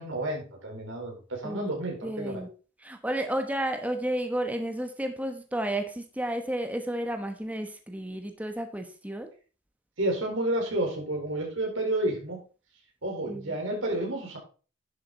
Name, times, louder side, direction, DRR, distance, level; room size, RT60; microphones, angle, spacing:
voice 1, 0.0-2.4 10.0-12.4 13.0-14.4, right 1 dB, 85° right, -1 dB, 4.4 m, -30 dB
voice 2, 2.0-2.5 2.8-9.3 13.3-13.6, right 1 dB, 10° right, 6 dB, 1.1 m, -32 dB
11.0 x 7.3 x 4.2 m, 0.37 s
head